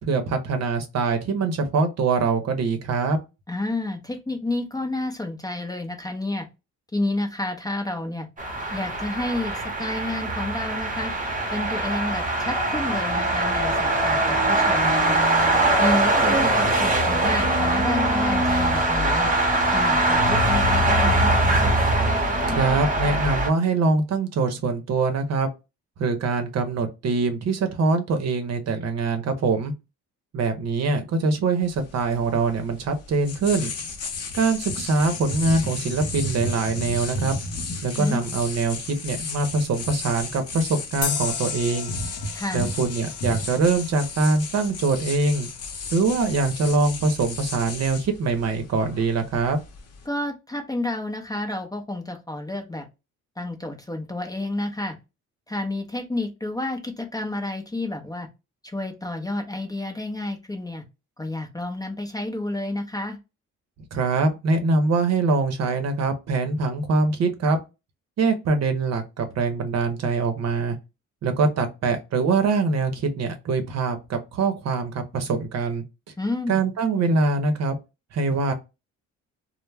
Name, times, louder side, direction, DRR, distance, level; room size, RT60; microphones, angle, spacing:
voice 1, 0.0-3.2 22.5-25.5 26.0-29.7 30.3-33.7 34.3-37.3 37.8-41.9 42.5-45.5 45.9-49.6 63.9-67.6 68.2-70.8 71.2-75.8 76.5-77.8 78.1-78.5, right 3 dB, 60° right, 0.7 m, -23 dB
voice 2, 3.5-6.5 6.9-8.3 8.7-11.1 11.5-15.2 15.8-19.3 19.7-21.7 37.9-38.2 42.3-42.7 50.1-52.9 53.4-55.0 55.5-58.3 58.6-60.8 61.2-63.2 76.2-76.7, left 2 dB, 10° left, 0.5 m, -30 dB
sound 1, 8.4-23.5, right 1 dB, 25° right, 0.8 m, -22 dB
sound 2, 31.6-50.1, left 3 dB, 55° left, 0.8 m, -34 dB
sound 3, 41.0-44.4, left 7 dB, 90° left, 0.6 m, -33 dB
2.1 x 2.0 x 3.2 m
cardioid pair, 90°, 30 cm